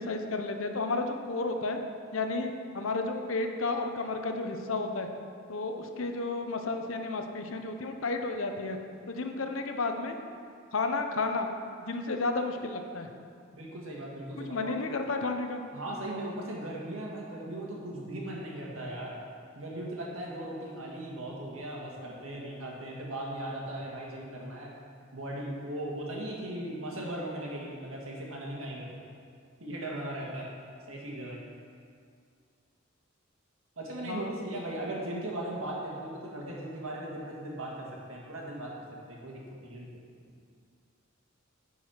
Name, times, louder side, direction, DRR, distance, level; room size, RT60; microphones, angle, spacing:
voice 1, 0.0-1.8 2.1-5.1 5.5-8.8 9.1-10.2 10.7-11.5 11.8-13.1 14.4-15.6 34.0-34.3, left 3 dB, 70° left, 5 dB, 0.8 m, -32 dB
voice 2, 13.5-14.7 15.7-19.2 19.6-24.7 25.1-29.0 29.6-30.5 30.9-31.4 33.8-38.7 39.1-39.9, right 1 dB, 75° right, -3 dB, 1.8 m, -38 dB
10.0 x 4.8 x 5.8 m, 2.2 s
head